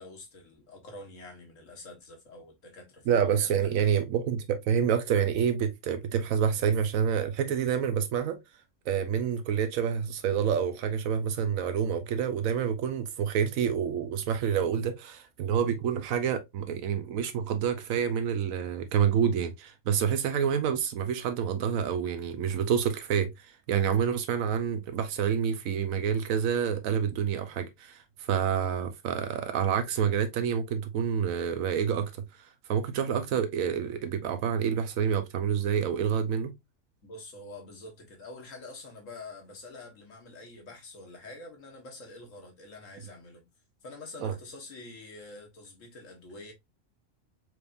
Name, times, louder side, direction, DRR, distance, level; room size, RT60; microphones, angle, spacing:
voice 1, 0.0-3.7 37.0-43.4 43.8-46.5, left 2 dB, 70° left, 1.7 m, -46 dB
voice 2, 3.1-8.4 8.9-32.1 32.7-36.5 44.2-44.3, right 8 dB, 85° right, 1.1 m, -28 dB
4.6 x 3.4 x 2.4 m
omnidirectional pair, 1.4 m